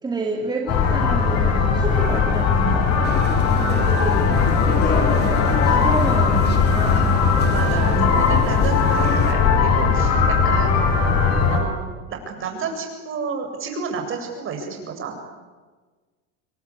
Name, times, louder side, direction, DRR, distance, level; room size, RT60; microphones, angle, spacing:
voice 1, 0.0-2.9 3.5-7.1 7.7-8.2, right 3 dB, 10° right, 1 dB, 2.7 m, -29 dB
sound 1, 0.7-11.6, left 5 dB, 45° left, 6.3 m, -19 dB
sound 2, 3.0-9.3, left 5 dB, 25° left, 3.8 m, -29 dB
voice 2, 4.1-4.7 7.5-10.8 11.5-11.8 12.3-15.2, right 5 dB, 35° right, 3 dB, 7.7 m, -30 dB
28.5 x 22.5 x 8.7 m, 1.3 s
supercardioid pair, 145°, 36 cm